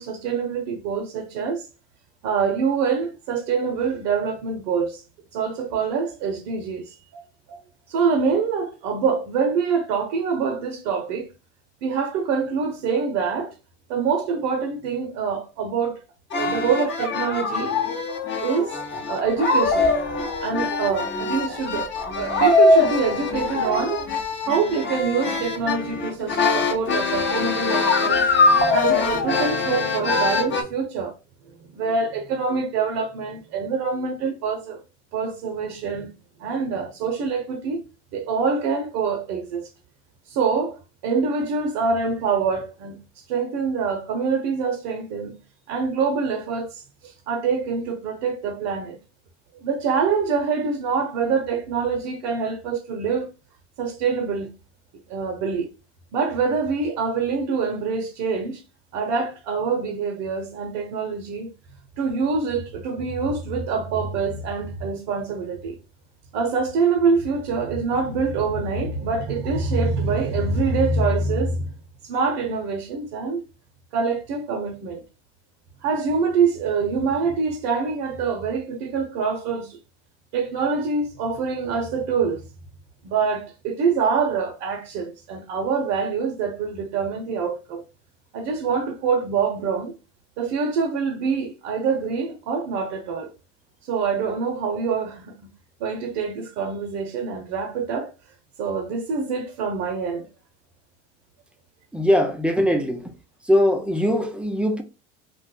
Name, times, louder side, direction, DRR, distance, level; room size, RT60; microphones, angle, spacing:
voice 1, 0.0-1.7 2.2-5.0 5.3-7.2 7.5-7.6 7.9-11.3 11.8-13.5 13.9-16.0 16.3-17.8 18.4-18.8 19.1-19.9 20.4-24.0 24.4-31.1 31.7-34.8 35.1-36.1 36.4-37.8 38.1-39.7 40.3-40.8 41.0-43.0 43.3-45.3 45.7-49.0 49.5-53.3 53.8-54.5 55.1-55.7 56.1-58.6 58.9-61.5 62.0-65.8 66.3-71.7 72.0-73.4 73.9-75.0 75.8-79.8 80.3-82.5 83.0-87.8 88.3-89.9 90.4-93.3 93.8-95.3 95.8-98.1 98.6-100.3, right 5 dB, 60° right, 0.7 m, -25 dB
sound 1, 16.3-30.6, left 3 dB, 30° left, 0.8 m, -22 dB
voice 2, 101.9-103.1 103.4-104.8, equal, 5° right, 0.5 m, -21 dB
2.5 x 2.2 x 3.6 m
hypercardioid pair, 85°, 36 cm